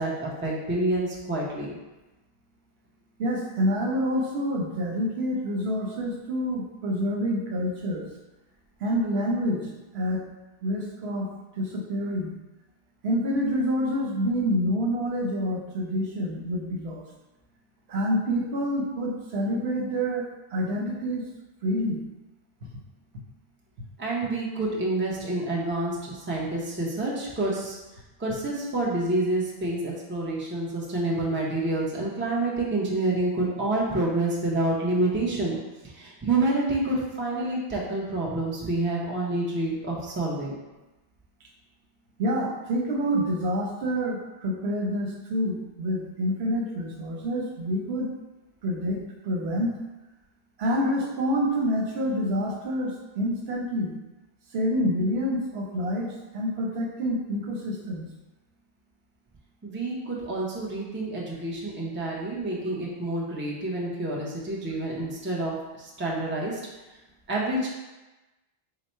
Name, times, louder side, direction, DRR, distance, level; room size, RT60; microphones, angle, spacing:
voice 1, 0.0-1.7 24.0-27.8 28.2-35.6 35.8-40.5 59.6-66.6 67.3-67.7, right 2 dB, 15° right, -3 dB, 0.5 m, -28 dB
voice 2, 3.2-8.1 8.8-10.2 10.6-12.3 13.0-17.0 17.9-21.3 21.6-22.0 22.6-22.7 42.2-48.1 48.6-49.7 50.6-53.9 54.5-58.1, equal, 75° right, -1 dB, 1.0 m, -27 dB
4.0 x 2.0 x 4.3 m, 1.1 s
omnidirectional pair, 1.1 m